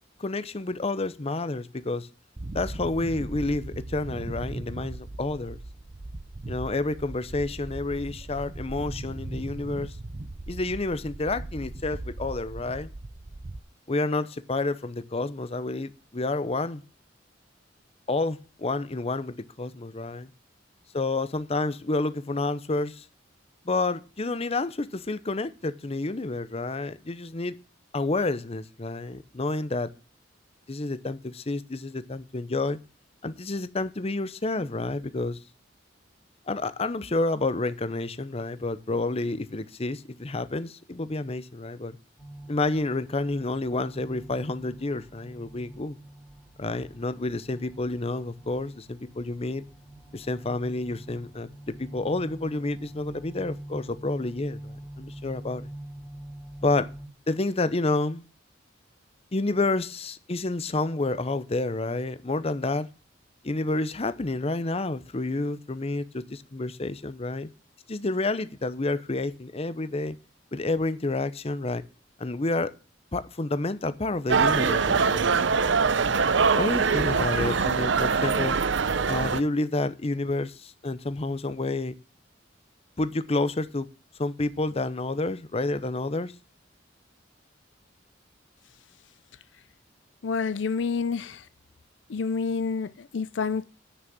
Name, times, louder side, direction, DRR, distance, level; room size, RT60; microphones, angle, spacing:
voice 1, 0.2-2.1 2.5-5.6 6.5-10.0 10.5-12.9 13.9-16.8 18.1-20.3 20.9-23.0 23.6-27.6 27.9-29.9 30.7-32.8 33.2-35.4 36.5-42.0 42.5-46.0 46.6-49.7 50.1-55.7 56.6-56.9 57.3-58.3 59.3-62.9 63.4-67.5 67.9-70.2 70.5-71.8 72.2-72.7 73.1-75.5 75.9-76.2 76.5-78.6 79.1-81.9 83.0-83.9 84.2-86.3, left 2 dB, 35° left, 0.8 m, -29 dB
underwater-bubble-submerge-deep-drown, 2.4-13.6, right 2 dB, 35° right, 0.6 m, -38 dB
sound 1, 42.2-57.1, right 1 dB, ahead, 2.7 m, -45 dB
sound 2, 74.3-79.4, right 5 dB, 70° right, 0.7 m, -23 dB
voice 2, 90.2-91.4 92.1-93.6, left 5 dB, 75° left, 0.5 m, -28 dB
9.8 x 6.3 x 7.2 m
head